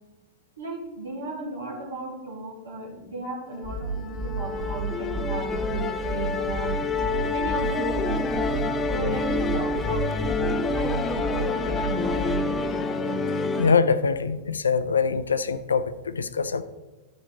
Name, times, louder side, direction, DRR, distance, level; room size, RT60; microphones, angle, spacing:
voice 1, 0.6-6.8 7.3-8.2 8.9-12.2, right 2 dB, 70° right, -3 dB, 2.8 m, -35 dB
Musical instrument, 3.6-13.7, left 3 dB, 20° left, 0.6 m, -27 dB
sound 1, 3.6-12.6, right 3 dB, 15° right, 1.7 m, -32 dB
voice 2, 13.6-16.6, left 5 dB, 75° left, 14 dB, 0.5 m, -23 dB
12.0 x 5.3 x 4.0 m, 1.2 s
figure-of-eight pair, 90°, 0 cm